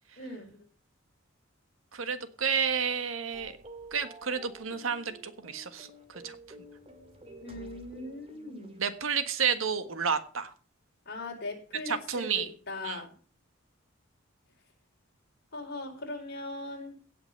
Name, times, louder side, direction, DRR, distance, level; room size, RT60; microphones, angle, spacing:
voice 1, 0.2-0.6 7.4-8.8 11.1-13.1 15.5-16.9, left 2 dB, 55° left, 2 dB, 4.1 m, -40 dB
voice 2, 1.9-3.5 3.9-5.9 6.2-6.3 8.8-10.5 11.9-12.5 12.8-13.0, right 6 dB, 80° right, 11 dB, 1.5 m, -30 dB
sound 1, 3.3-8.9, right 1 dB, 30° right, 2.3 m, -50 dB
16.5 x 6.0 x 6.9 m, 0.39 s
head